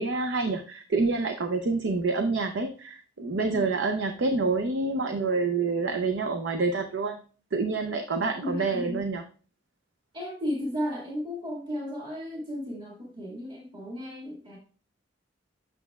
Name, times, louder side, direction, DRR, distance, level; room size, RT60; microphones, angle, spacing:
voice 1, 0.0-7.2 7.5-9.2, right 3 dB, 75° right, 6 dB, 0.6 m, -27 dB
voice 2, 8.4-9.0 10.1-14.6, left 1 dB, 25° right, -3 dB, 2.0 m, -34 dB
8.4 x 6.7 x 2.3 m, 0.39 s
head